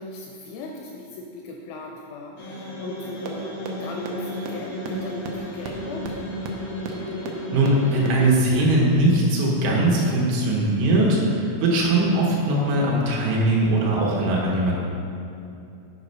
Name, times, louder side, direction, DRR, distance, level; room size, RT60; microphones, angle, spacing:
voice 1, 0.0-6.2, left 2 dB, 85° left, 0 dB, 2.7 m, -37 dB
sound 1, 2.4-8.3, left 1 dB, 65° left, 1.3 m, -33 dB
sound 2, 3.3-3.4 3.7-3.8 4.1-4.2 4.4-4.5 4.8-4.9 5.2-5.3 5.6-5.7 6.0-6.1 6.4-6.5 6.8-6.9 7.2-7.3 7.7-7.8 8.1-8.2, right 10 dB, 90° right, 3.4 m, -33 dB
voice 2, 7.5-14.7, right 1 dB, 75° right, -4 dB, 3.5 m, -20 dB
9.3 x 4.9 x 5.4 m, 2.6 s
omnidirectional pair, 5.9 m